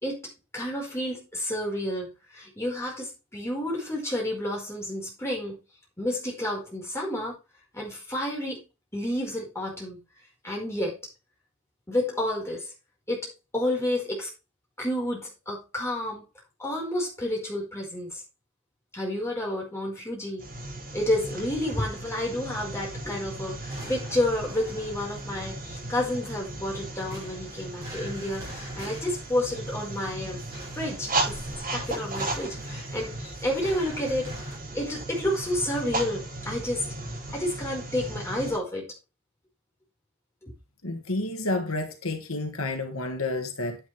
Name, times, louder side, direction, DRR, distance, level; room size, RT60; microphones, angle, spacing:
voice 1, 0.0-5.5 6.0-7.4 7.7-8.6 8.9-10.0 10.4-11.0 11.9-12.7 13.1-14.3 14.8-16.3 16.6-18.2 18.9-20.5 20.9-30.4 30.7-31.4 31.7-34.3 34.7-36.9 37.3-38.9 40.4-40.5, left 1 dB, 10° left, 4.9 m, -30 dB
sound 1, 20.4-38.6, right 2 dB, 40° right, 7.7 m, -36 dB
sound 2, 23.7-34.6, equal, 15° right, 7.4 m, -46 dB
voice 2, 40.8-43.8, left 2 dB, 80° left, 1.8 m, -30 dB
9.9 x 9.6 x 3.4 m
head